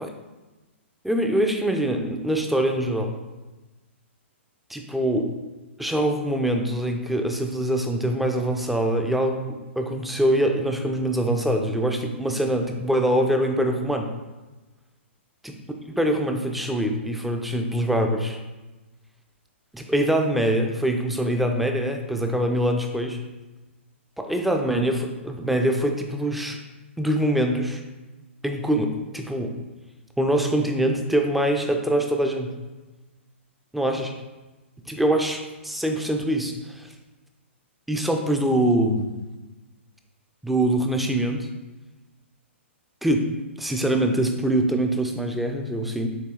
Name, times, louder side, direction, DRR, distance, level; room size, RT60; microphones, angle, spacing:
voice 1, 1.0-3.1 4.7-5.3 5.8-14.1 15.4-15.6 15.9-18.4 19.7-23.2 24.2-26.6 27.0-27.8 28.4-29.5 30.2-32.5 33.7-34.1 34.9-36.9 37.9-39.1 40.4-41.5 43.0-43.3 43.6-46.1, right 1 dB, ahead, 3 dB, 0.4 m, -24 dB
6.7 x 2.7 x 2.4 m, 1.1 s
hypercardioid pair, 125°, 7 cm